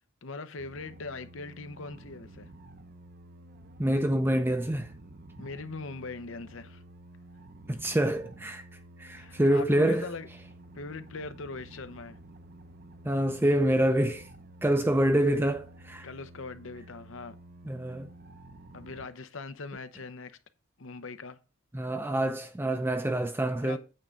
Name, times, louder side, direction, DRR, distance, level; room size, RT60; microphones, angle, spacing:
voice 1, 0.2-2.5 5.4-6.8 9.2-10.3 10.7-12.2 16.0-17.4 18.7-20.4 20.8-21.4 23.6-23.8, left 3 dB, 65° left, 0.8 m, -41 dB
sound 1, 0.6-19.1, right 1 dB, 45° right, 0.7 m, -51 dB
voice 2, 3.8-4.9 7.7-8.6 9.0-10.1 13.0-14.3 14.6-16.1 17.6-18.1 21.7-23.8, right 1 dB, 10° right, 0.5 m, -26 dB
8.8 x 3.7 x 6.5 m
head